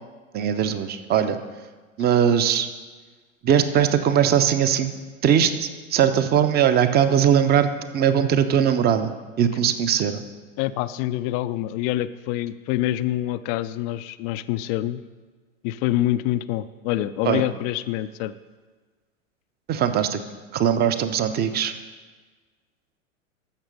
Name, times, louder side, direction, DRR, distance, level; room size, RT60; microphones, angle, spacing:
voice 1, 0.3-1.4 2.0-2.7 3.4-4.9 5.2-10.2 17.2-17.4 19.7-20.2 20.5-21.7, right 8 dB, 25° right, 11 dB, 0.8 m, -20 dB
voice 2, 10.6-15.0 15.6-18.3, left 14 dB, 30° left, 13 dB, 0.4 m, -26 dB
14.0 x 6.4 x 5.2 m, 1.4 s
figure-of-eight pair, 95°, 39 cm